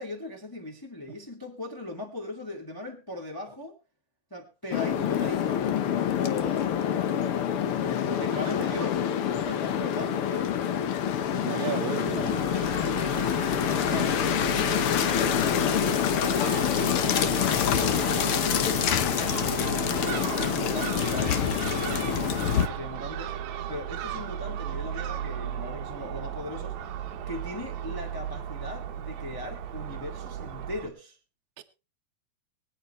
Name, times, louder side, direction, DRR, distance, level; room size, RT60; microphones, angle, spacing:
voice 1, 0.0-3.7 4.3-5.6 6.2-10.5 13.9-15.4 17.1-19.0 20.1-23.4 23.7-26.8 27.3-31.2, left 2 dB, 10° left, 1.2 m, -39 dB
sound 1, 4.7-22.7, left 9 dB, 80° left, 1.2 m, -26 dB
voice 2, 11.3-12.4 13.7-14.1 31.6-31.7, right 10 dB, 65° right, 2.1 m, -34 dB
Crow / Gull seagull, 12.2-30.9, right 9 dB, 85° right, 3.1 m, -35 dB
23.5 x 9.1 x 3.2 m
omnidirectional pair, 4.0 m